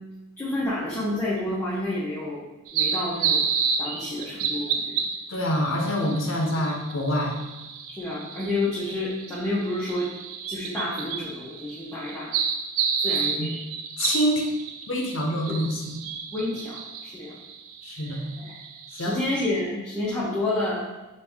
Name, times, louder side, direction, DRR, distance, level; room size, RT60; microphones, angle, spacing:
voice 1, 0.4-2.4 2.7-3.4 3.8-5.0 6.5-6.6 7.9-10.1 10.5-12.3 13.0-13.5 15.5-15.6 16.3-17.3 18.4-18.6 19.0-20.9, left 2 dB, 10° left, -9 dB, 0.8 m, -29 dB
sound 1, 2.7-19.2, right 6 dB, 70° right, 0.4 m, -31 dB
voice 2, 5.3-7.4 13.4-13.5 14.0-14.4 14.9-16.0 17.8-18.3 18.9-19.2, equal, 60° left, 1 dB, 0.7 m, -26 dB
5.2 x 2.6 x 3.5 m, 1.0 s
head